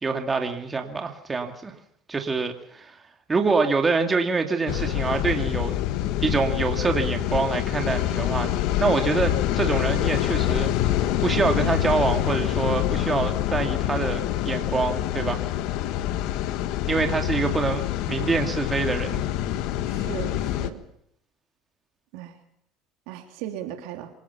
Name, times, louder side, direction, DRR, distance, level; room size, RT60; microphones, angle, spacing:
voice 1, 0.0-1.7 2.1-3.0 3.3-5.8 6.2-10.7 11.0-15.4 16.9-19.2, right 4 dB, 20° right, 4 dB, 2.5 m, -25 dB
sound 1, 4.7-20.7, left 12 dB, 70° left, 1.4 m, -26 dB
voice 2, 19.9-20.8 22.1-22.4 23.1-24.1, right 12 dB, 75° right, 4 dB, 3.4 m, -37 dB
26.5 x 18.0 x 5.8 m, 0.71 s
supercardioid pair, 90°, 0 cm